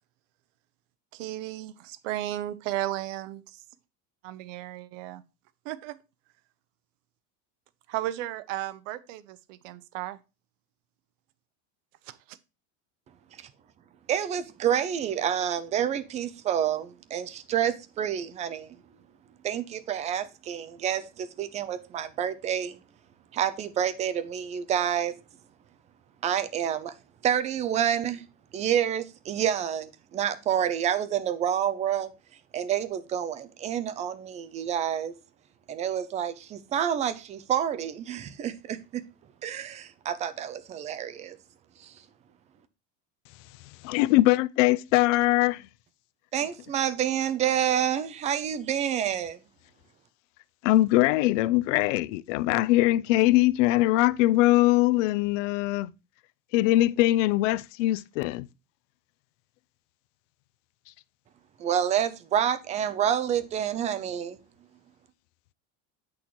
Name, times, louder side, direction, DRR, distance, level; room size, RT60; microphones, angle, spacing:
voice 1, 1.1-3.6 4.2-5.2 5.6-6.0 7.9-10.2 12.1-12.4, right 14 dB, 85° right, 0.8 m, -34 dB
voice 2, 14.1-18.8 19.4-22.8 23.3-25.1 26.2-26.9 27.2-28.2 28.5-32.1 32.5-35.1 35.7-39.0 39.4-41.4 41.8-41.9 46.3-49.4 61.6-64.4, right 9 dB, 20° right, 0.4 m, -28 dB
voice 3, 43.8-45.7 50.6-55.9 56.5-58.5, left 17 dB, 80° left, 0.5 m, -22 dB
8.5 x 6.2 x 3.0 m
cardioid pair, 165°, 36 cm